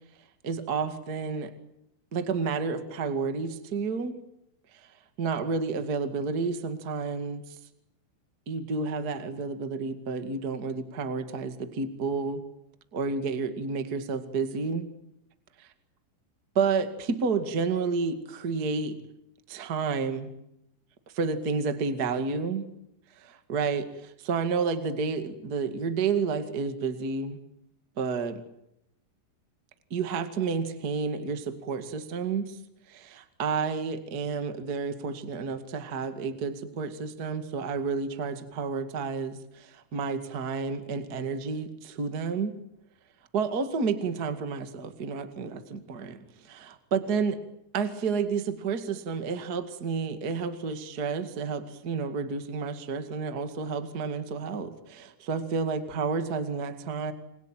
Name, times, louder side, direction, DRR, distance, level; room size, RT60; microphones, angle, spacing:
voice 1, 0.4-1.5 2.1-4.2 4.7-4.9 5.2-7.6 8.5-12.4 12.9-14.8 15.6-15.7 16.5-19.0 19.5-20.3 21.1-22.6 23.1-27.4 28.0-28.4 29.9-32.6 32.9-42.5 43.3-47.4 47.7-57.1, right 5 dB, 80° right, 8 dB, 0.8 m, -30 dB
29.5 x 22.0 x 9.1 m, 0.82 s
omnidirectional pair, 5.8 m